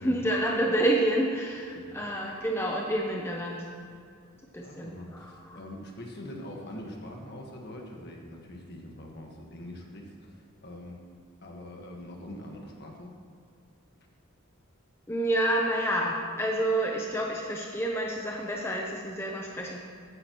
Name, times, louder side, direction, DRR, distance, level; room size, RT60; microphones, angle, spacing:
voice 1, 0.0-3.6 4.5-5.6 15.1-19.8, right 1 dB, 10° left, -1 dB, 0.7 m, -29 dB
voice 2, 1.7-2.0 4.3-11.0 11.4-13.1, left 1 dB, 50° left, 0 dB, 1.6 m, -43 dB
15.0 x 9.6 x 3.1 m, 2.3 s
head